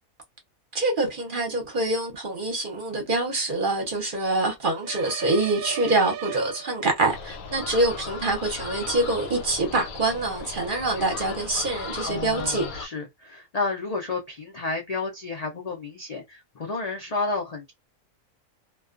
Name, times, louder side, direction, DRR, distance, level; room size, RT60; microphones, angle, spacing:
voice 1, 0.7-12.6, right 2 dB, 45° right, 0.8 m, -25 dB
sound 1, 4.8-7.2, right 10 dB, 90° right, 1.0 m, -36 dB
sound 2, 7.1-12.9, left 4 dB, 90° left, 1.1 m, -37 dB
voice 2, 12.1-17.7, left 3 dB, 70° left, 0.3 m, -31 dB
2.3 x 2.2 x 2.4 m
omnidirectional pair, 1.4 m